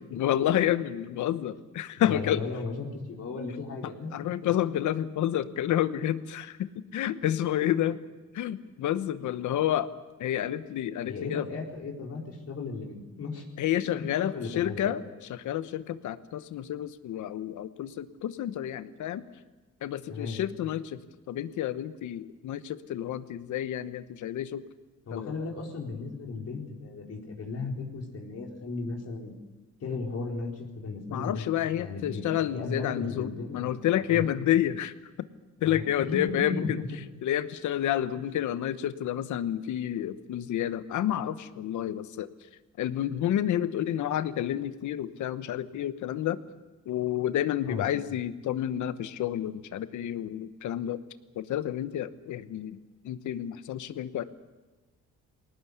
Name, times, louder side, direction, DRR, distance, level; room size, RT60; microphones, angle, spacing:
voice 1, 0.1-2.4 4.1-8.0 8.3-9.9 10.2-11.5 13.6-15.0 15.3-19.2 19.8-21.0 21.3-24.6 25.1-25.3 31.1-34.9 35.6-36.8 37.2-42.3 42.8-46.4 46.9-51.0 51.4-52.8 53.0-54.2, left 11 dB, 75° left, 13 dB, 1.1 m, -29 dB
voice 2, 1.9-4.5 11.1-13.4 13.8-14.9 20.1-20.4 25.1-29.3 29.8-31.4 31.8-34.3 35.6-36.8 47.6-47.9, left 4 dB, 55° left, 0 dB, 4.4 m, -36 dB
21.0 x 19.0 x 8.2 m, 1.2 s
cardioid pair, 90°, 30 cm